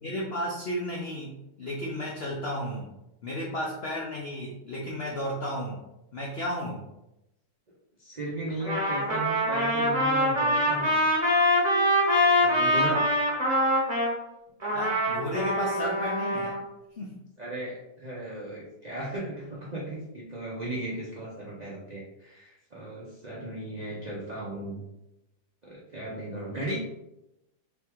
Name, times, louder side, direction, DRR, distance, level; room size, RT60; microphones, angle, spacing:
voice 1, 0.0-2.9 3.2-5.8 6.1-6.8 14.7-16.5 17.0-17.1, equal, 75° left, -2 dB, 0.5 m, -33 dB
voice 2, 8.0-10.9 12.4-13.0 17.4-24.8 25.6-26.8, right 1 dB, 70° right, -5 dB, 0.4 m, -36 dB
Trumpet, 8.6-14.1 14.6-16.6, equal, 30° right, 0.9 m, -24 dB
3.9 x 3.5 x 3.0 m, 0.90 s
omnidirectional pair, 1.9 m